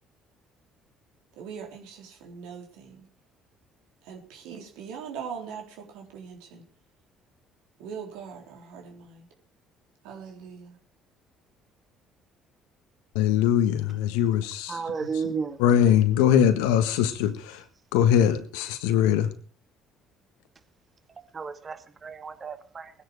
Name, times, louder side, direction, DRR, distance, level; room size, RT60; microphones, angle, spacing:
voice 1, 1.3-3.1 4.0-6.6 7.8-9.3 10.0-10.8, right 7 dB, 80° right, 3.6 m, -41 dB
voice 2, 13.1-14.8 15.6-17.6 17.9-19.3, left 9 dB, 85° left, 1.5 m, -22 dB
voice 3, 14.7-15.6 21.3-22.9, right 5 dB, 35° right, 2.1 m, -33 dB
20.0 x 10.0 x 4.9 m
hypercardioid pair, 65°, 0 cm